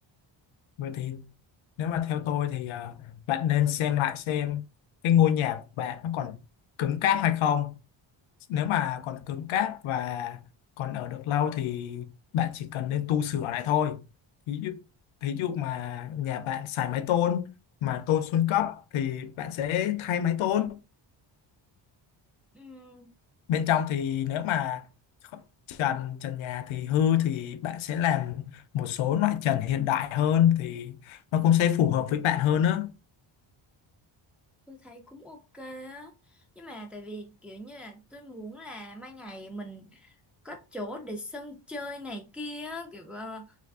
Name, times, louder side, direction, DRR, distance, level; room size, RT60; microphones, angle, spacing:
voice 1, 0.8-1.3 1.8-4.6 5.0-6.4 6.8-7.8 8.5-10.4 10.8-12.1 12.3-14.0 14.5-14.8 15.2-17.5 17.8-20.8 23.5-24.9 25.3-25.4 25.7-32.9, left 10 dB, 80° left, 0.6 m, -27 dB
voice 2, 22.5-23.1 34.7-40.1 40.4-43.6, left 1 dB, 5° right, 0.4 m, -41 dB
3.2 x 2.5 x 3.4 m
cardioid pair, 135°, 47 cm